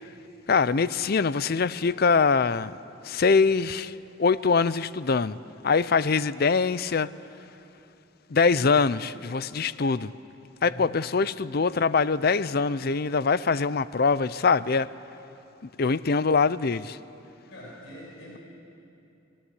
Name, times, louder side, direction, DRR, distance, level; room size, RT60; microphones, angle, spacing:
voice 1, 0.5-2.7 3.0-5.4 5.6-7.1 8.3-10.1 10.6-14.9 15.8-17.0, left 4 dB, 50° left, 0.5 m, -23 dB
voice 2, 10.6-11.0 17.5-18.4, left 1 dB, 65° left, 5.9 m, -44 dB
26.5 x 18.5 x 9.8 m
head